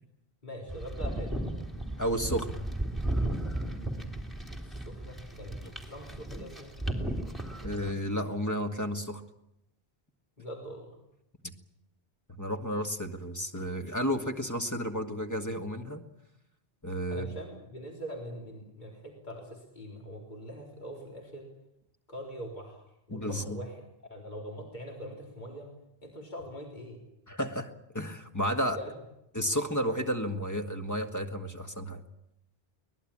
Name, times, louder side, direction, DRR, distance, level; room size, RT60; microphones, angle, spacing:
voice 1, 0.4-1.5 4.6-6.7 10.4-11.0 17.1-21.5 22.1-22.8 23.1-23.8 24.1-25.7 26.0-27.0 28.7-29.0, equal, 45° left, 0 dB, 4.0 m, -43 dB
sound 1, 0.7-7.9, right 1 dB, ahead, 3.1 m, -35 dB
voice 2, 2.0-2.6 7.6-9.2 12.3-16.0 16.8-17.3 23.1-23.6 27.3-28.8 29.4-32.0, equal, 15° left, 5 dB, 1.7 m, -32 dB
23.5 x 19.5 x 8.7 m, 0.83 s
omnidirectional pair, 1.0 m